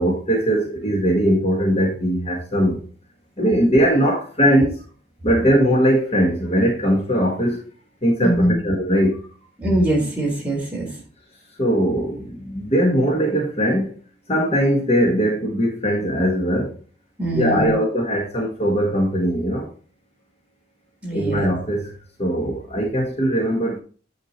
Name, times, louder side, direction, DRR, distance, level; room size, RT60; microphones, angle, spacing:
voice 1, 0.0-2.8 3.4-4.8 5.2-7.7 8.0-9.3 11.6-13.9 14.3-16.8 17.3-19.7 21.1-21.9 22.2-23.8, equal, 35° left, 1.6 m, -20 dB
voice 2, 8.2-8.6 9.6-10.9 17.2-17.7 21.0-21.5, right 1 dB, 10° right, 3.6 m, -22 dB
9.6 x 5.1 x 4.3 m
head